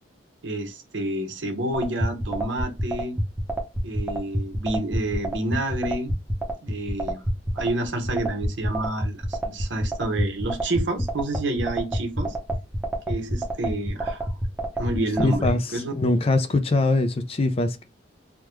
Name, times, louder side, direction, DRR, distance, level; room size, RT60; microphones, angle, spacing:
voice 1, 0.4-3.2 3.8-6.1 6.6-7.2 7.5-12.3 13.1-14.3 14.8-15.9, right 1 dB, 85° right, 0.8 m, -29 dB
sound 1, 1.7-15.5, right 1 dB, 10° right, 0.7 m, -26 dB
voice 2, 15.2-15.6 15.9-17.8, left 2 dB, 30° left, 0.4 m, -22 dB
3.4 x 2.2 x 3.0 m
head